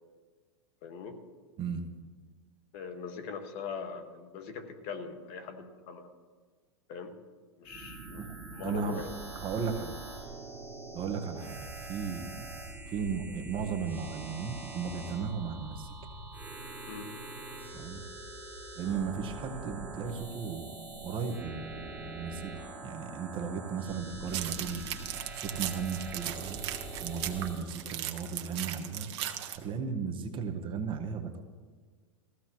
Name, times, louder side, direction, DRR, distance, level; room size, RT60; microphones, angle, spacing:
voice 1, 0.8-1.2 2.7-6.1 6.9-7.1 7.6-9.0 16.9-17.1, left 5 dB, 50° left, 6 dB, 1.6 m, -41 dB
sound 1, 7.6-27.6, right 2 dB, 10° right, 3.1 m, -44 dB
voice 2, 8.6-9.0 9.3-10.0 10.9-12.6 12.9-15.9 17.7-18.0 18.7-22.5 22.8-26.6 27.0-29.1 29.4-31.4, right 6 dB, 35° right, 5 dB, 1.4 m, -36 dB
sound 2, 24.3-29.6, right 12 dB, 60° right, 1.4 m, -38 dB
20.5 x 15.0 x 3.1 m, 1.5 s
hypercardioid pair, 120°, 16 cm